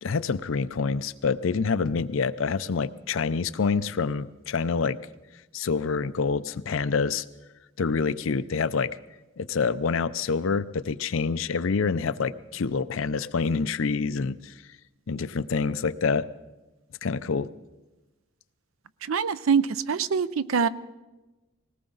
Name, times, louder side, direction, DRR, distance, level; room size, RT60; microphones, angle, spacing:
voice 1, 0.0-5.0 5.5-7.2 7.8-8.9 9.4-14.5 15.1-16.3 17.0-17.5, left 5 dB, 70° left, 14 dB, 0.5 m, -27 dB
voice 2, 19.1-20.7, right 6 dB, 80° right, 15 dB, 0.5 m, -24 dB
20.0 x 18.0 x 3.9 m, 1.1 s
head